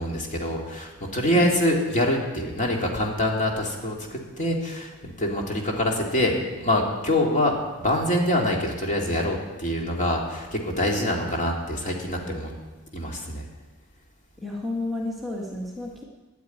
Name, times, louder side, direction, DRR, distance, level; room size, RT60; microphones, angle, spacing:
voice 1, 0.0-12.5 12.9-13.4, left 1 dB, 35° left, 0 dB, 2.4 m, -25 dB
voice 2, 14.4-16.0, left 2 dB, ahead, -4 dB, 1.6 m, -31 dB
10.5 x 9.6 x 9.2 m, 1.2 s
head